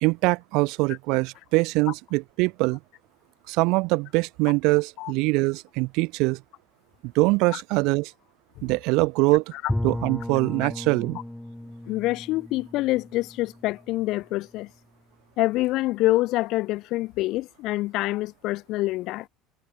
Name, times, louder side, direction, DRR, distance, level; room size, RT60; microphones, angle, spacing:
voice 1, 0.0-2.8 3.5-6.4 7.1-8.1 8.6-9.4 9.8-11.2, right 25 dB, 70° right, 0.5 m, -23 dB
Bowed string instrument, 9.7-14.5, left 1 dB, 5° left, 1.1 m, -35 dB
voice 2, 11.9-14.7 15.4-19.3, left 18 dB, 60° left, 1.0 m, -26 dB
cardioid pair, 140°, 0 cm